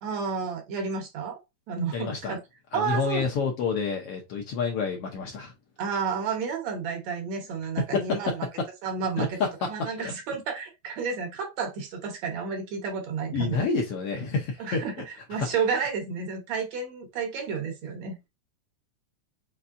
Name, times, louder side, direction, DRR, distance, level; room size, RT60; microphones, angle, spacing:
voice 1, 0.0-1.4 1.7-2.4 2.7-3.3 5.8-8.5 8.8-13.7 14.6-18.3, right 5 dB, 65° right, 2.3 m, -31 dB
voice 2, 1.9-2.3 2.7-5.5 7.9-8.2 9.2-9.5 10.0-10.1 13.3-14.8, left 5 dB, 65° left, 1.5 m, -28 dB
5.5 x 3.3 x 2.5 m
omnidirectional pair, 3.4 m